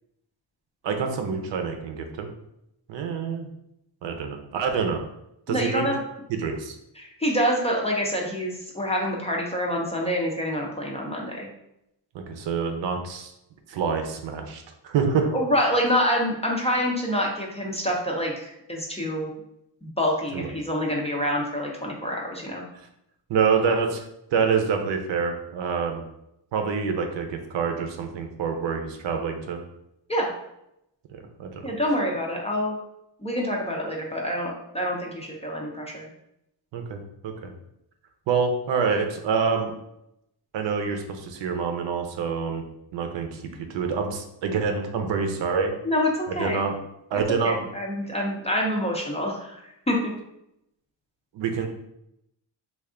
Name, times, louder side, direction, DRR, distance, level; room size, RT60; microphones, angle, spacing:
voice 1, 0.8-2.3 2.9-3.5 4.0-5.0 5.5-5.9 6.3-6.7 12.1-13.3 13.7-15.3 20.3-20.5 23.3-24.0 24.3-26.0 26.5-29.6 31.4-31.7 36.7-37.5 38.3-39.7 40.5-42.6 42.9-43.4 43.7-45.7 46.4-46.8 47.1-47.7 51.3-51.7, right 5 dB, 65° right, 5 dB, 0.7 m, -26 dB
voice 2, 5.5-6.0 7.0-11.5 15.3-19.3 19.8-22.6 30.1-30.3 31.6-32.8 33.2-36.1 45.8-46.6 47.4-49.6 49.9-50.0, equal, 15° left, -2 dB, 0.5 m, -26 dB
3.3 x 2.5 x 3.6 m, 0.81 s
cardioid pair, 130°, 47 cm